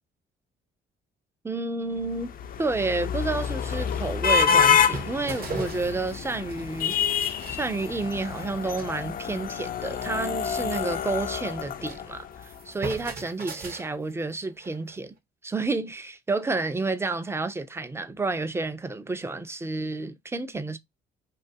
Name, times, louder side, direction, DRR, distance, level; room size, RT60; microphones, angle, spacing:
voice 1, 1.4-2.3 2.6-7.0 7.2-15.1 15.4-20.8, right 3 dB, 15° right, 0.4 m, -30 dB
sound 1, 2.1-12.4, left 7 dB, 45° left, 0.4 m, -27 dB
sound 2, 2.3-2.4 2.9-3.0 3.2-6.6 6.9-8.9 9.2-9.4 9.7-9.8 10.0-12.1 12.3-15.0, right 3 dB, 45° right, 0.8 m, -41 dB
2.6 x 2.4 x 2.5 m
cardioid pair, 90°, 20 cm